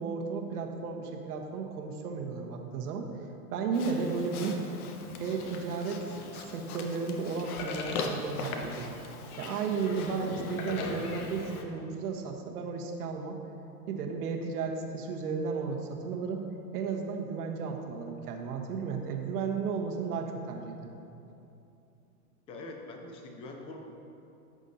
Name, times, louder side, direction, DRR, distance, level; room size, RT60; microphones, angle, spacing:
voice 1, 0.0-3.1 3.5-4.6 5.2-6.0 6.3-8.9 9.4-13.4 13.9-16.4 16.7-20.9, right 5 dB, 75° right, 3 dB, 1.3 m, -34 dB
Livestock farm animals working animals, 3.7-11.6, left 4 dB, 65° left, 1.1 m, -39 dB
voice 2, 22.5-23.8, left 2 dB, 15° left, 3 dB, 0.4 m, -43 dB
14.5 x 6.2 x 2.7 m, 2.8 s
supercardioid pair, 140°, 46 cm